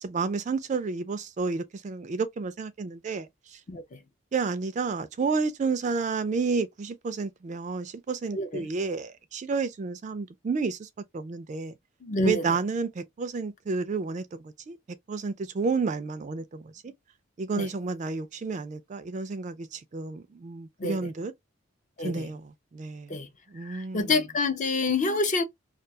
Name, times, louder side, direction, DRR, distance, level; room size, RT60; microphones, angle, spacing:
voice 1, 0.0-3.6 4.3-11.7 12.2-14.8 15.1-16.9 17.4-21.3 22.0-23.2 23.5-24.1, right 4 dB, 35° right, 0.3 m, -31 dB
voice 2, 3.7-4.0 8.3-8.7 12.0-12.4 17.6-17.7 20.8-21.0 22.0-22.3 23.1-23.3 23.6-25.4, left 3 dB, 35° left, 0.5 m, -27 dB
2.3 x 2.2 x 2.7 m
head